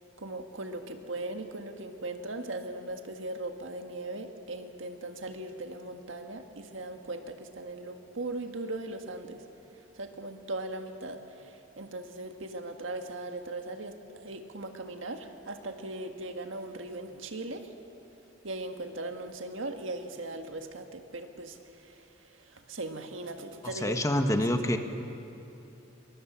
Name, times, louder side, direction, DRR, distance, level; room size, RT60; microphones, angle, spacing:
voice 1, 0.2-9.4 10.0-17.7 18.4-22.0 22.5-24.4, right 2 dB, 75° right, 5 dB, 1.7 m, -39 dB
voice 2, 23.6-24.8, left 1 dB, 15° left, 6 dB, 1.3 m, -27 dB
23.0 x 22.0 x 7.4 m, 2.9 s
head